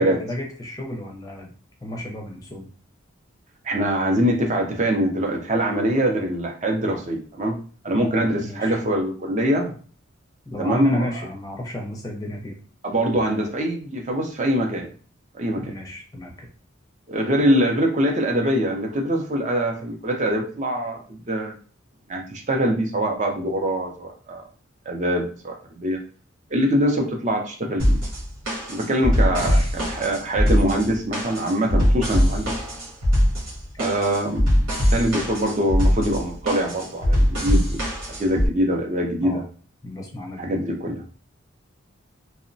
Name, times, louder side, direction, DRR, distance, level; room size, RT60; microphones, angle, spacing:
voice 1, 0.0-1.5 1.8-2.7 7.9-8.8 10.5-12.5 15.6-16.5 29.3-29.7 39.2-39.4 39.8-40.5, left 1 dB, 15° left, -1 dB, 0.5 m, -32 dB
voice 2, 3.6-7.6 7.8-9.7 10.6-11.1 12.8-14.9 15.3-15.6 17.1-21.5 22.1-24.4 24.9-26.0 26.5-28.0 28.7-32.5 33.8-37.8 38.2-39.4 40.4-41.0, right 1 dB, 35° right, 2 dB, 0.5 m, -23 dB
sound 1, 27.8-38.5, equal, 85° right, 1.2 m, -22 dB
2.8 x 2.1 x 2.6 m, 0.40 s
head